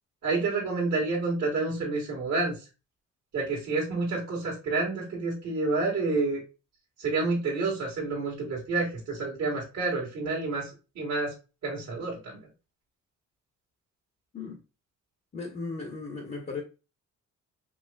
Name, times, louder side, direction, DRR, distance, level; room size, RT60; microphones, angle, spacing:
voice 1, 0.2-2.6 3.3-6.4 7.0-11.3 11.6-12.4, right 3 dB, 55° right, 1.8 m, -29 dB
voice 2, 15.3-16.6, left 4 dB, 30° left, 1.1 m, -36 dB
4.9 x 3.1 x 2.2 m
cardioid pair, 90°, 30 cm